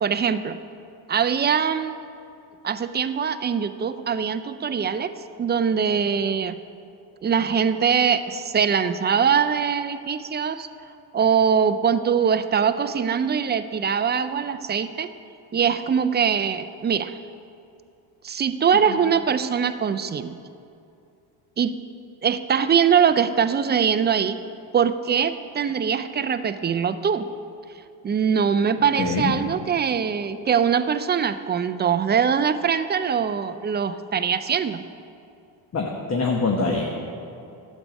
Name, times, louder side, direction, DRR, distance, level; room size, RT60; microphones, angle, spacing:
voice 1, 0.0-0.6 1.1-2.0 2.6-5.1 5.4-6.6 7.2-10.7 11.1-15.1 15.5-17.1 18.2-20.4 21.6-21.7 22.2-24.4 24.7-27.3 28.0-34.8, right 7 dB, 25° right, 11 dB, 0.3 m, -22 dB
voice 2, 29.0-29.4 35.7-37.0, left 3 dB, 35° left, 0 dB, 1.2 m, -24 dB
12.0 x 8.4 x 5.2 m, 2.6 s
cardioid pair, 110°, 46 cm